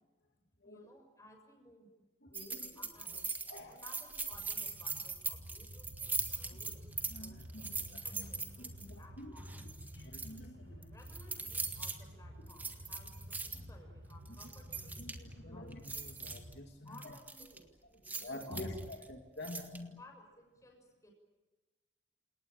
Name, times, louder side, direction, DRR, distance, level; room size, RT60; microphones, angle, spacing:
voice 1, 0.6-2.0 2.7-3.3 3.6-9.6 10.9-15.7 16.8-19.1 19.7-21.1, left 1 dB, 15° left, 3 dB, 6.4 m, -59 dB
voice 2, 2.2-2.8 3.5-3.8 7.1-9.3 9.9-10.9 13.5-13.6 15.0-17.1 18.2-20.0, left 1 dB, 65° left, 3 dB, 2.5 m, -48 dB
sound 1, 2.3-8.9 9.4-10.4 10.8-12.0 12.5-13.6 14.1-15.3 15.7-16.5 16.9-17.6 18.1-19.1 19.4-19.8, right 4 dB, 10° right, 1.8 m, -41 dB
sound 2, 4.3-16.6, equal, 80° right, 7.7 m, -51 dB
29.0 x 19.0 x 9.0 m, 1.2 s
head